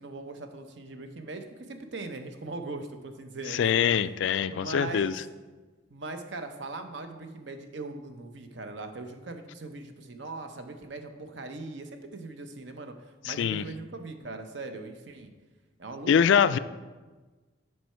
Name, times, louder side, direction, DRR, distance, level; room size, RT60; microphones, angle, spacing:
voice 1, 0.0-4.1 4.5-5.2 5.9-12.9 13.2-15.3 15.8-16.6, right 3 dB, 70° right, 7 dB, 0.7 m, -40 dB
voice 2, 3.5-5.1 13.2-13.6 16.1-16.6, left 7 dB, 70° left, 15 dB, 0.3 m, -23 dB
7.9 x 5.5 x 4.4 m, 1.3 s
head